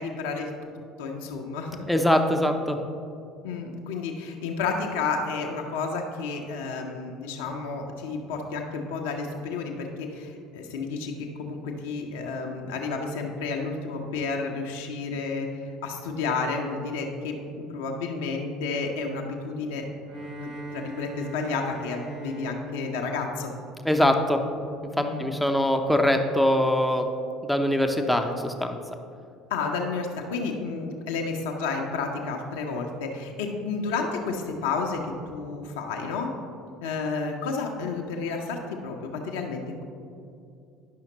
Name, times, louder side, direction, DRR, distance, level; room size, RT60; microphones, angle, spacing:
voice 1, 0.0-1.8 3.4-15.5 15.8-17.4 17.7-19.9 20.4-23.5 25.0-25.3 29.5-36.3 36.8-39.8, left 4 dB, 70° left, 1 dB, 0.7 m, -31 dB
voice 2, 1.9-2.8 23.8-24.4 25.2-27.1 27.4-28.8, left 1 dB, ahead, 5 dB, 0.6 m, -22 dB
Bowed string instrument, 20.0-24.4, right 1 dB, 55° right, 0.8 m, -41 dB
10.5 x 5.7 x 2.9 m, 2.5 s
figure-of-eight pair, 60°, 0 cm